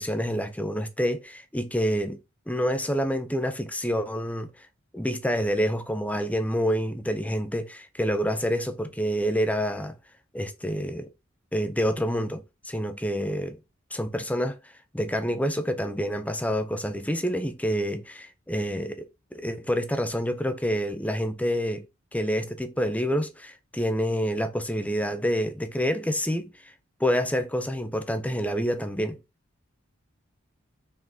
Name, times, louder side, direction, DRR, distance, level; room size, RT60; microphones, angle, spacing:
voice 1, 0.0-2.2 2.5-4.7 4.9-9.9 10.3-11.1 11.5-13.6 13.9-14.6 14.9-19.1 19.3-21.9 22.1-26.5 27.0-29.2, equal, 5° left, 0.9 m, -27 dB
6.3 x 4.9 x 4.5 m
head